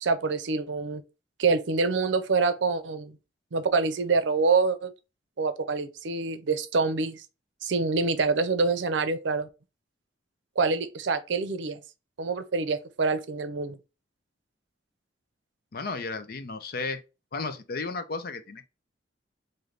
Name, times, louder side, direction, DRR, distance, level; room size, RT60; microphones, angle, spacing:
voice 1, 0.0-1.0 1.4-3.2 3.5-4.9 5.4-7.2 7.6-9.5 10.6-11.8 12.2-13.8, right 4 dB, 90° right, 0.5 m, -26 dB
voice 2, 15.7-17.0 17.3-18.7, left 4 dB, 55° left, 0.5 m, -34 dB
3.3 x 2.6 x 3.8 m
head